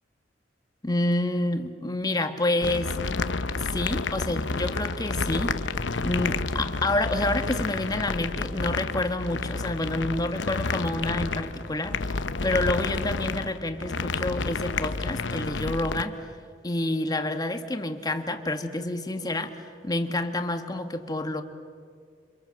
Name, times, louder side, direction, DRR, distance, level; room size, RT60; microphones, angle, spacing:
voice 1, 0.8-3.0 3.6-5.6 6.0-12.1 12.4-16.2 16.6-21.4, left 2 dB, 20° left, 6 dB, 1.7 m, -28 dB
sound 1, 2.6-16.0, left 3 dB, 80° left, 0.9 m, -30 dB
29.5 x 26.0 x 7.7 m, 2.2 s
head